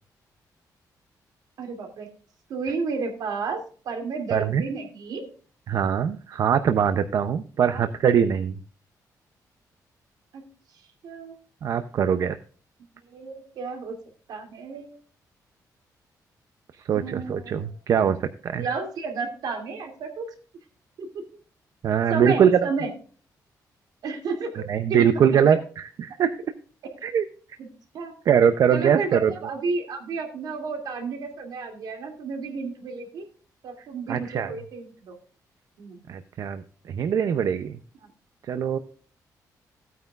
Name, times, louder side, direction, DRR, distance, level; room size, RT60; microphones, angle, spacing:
voice 1, 1.6-2.1 2.5-5.2 7.7-7.8 10.3-10.4 11.0-11.3 13.1-14.0 14.3-15.0 16.9-17.7 18.5-20.3 21.0-21.2 22.1-22.9 24.0-25.4 27.6-27.7 27.9-28.1 28.7-33.3 33.6-35.2 35.8-36.0, right 4 dB, 75° right, 4 dB, 2.5 m, -32 dB
voice 2, 4.3-4.6 5.7-8.6 11.6-12.4 16.8-18.7 21.8-22.7 24.7-26.3 27.0-27.3 28.3-29.3 33.8-34.5 36.1-37.8 38.4-38.8, right 8 dB, 55° right, 10 dB, 0.5 m, -22 dB
15.5 x 9.2 x 2.4 m, 0.40 s
wide cardioid pair, 175°, 7 cm